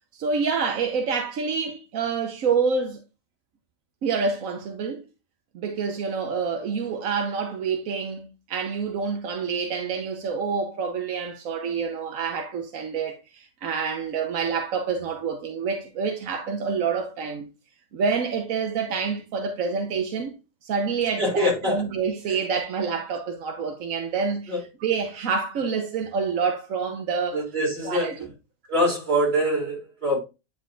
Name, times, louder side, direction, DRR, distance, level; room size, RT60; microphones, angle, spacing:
voice 1, 0.1-3.0 4.0-5.0 5.5-17.5 17.9-20.4 20.6-24.5 24.8-27.4 27.8-28.2, right 5 dB, 90° right, 1.3 m, -27 dB
voice 2, 21.2-21.9 24.5-24.6 27.3-28.1 28.7-30.2, equal, 50° right, 3.4 m, -24 dB
9.6 x 4.1 x 2.4 m
omnidirectional pair, 1.4 m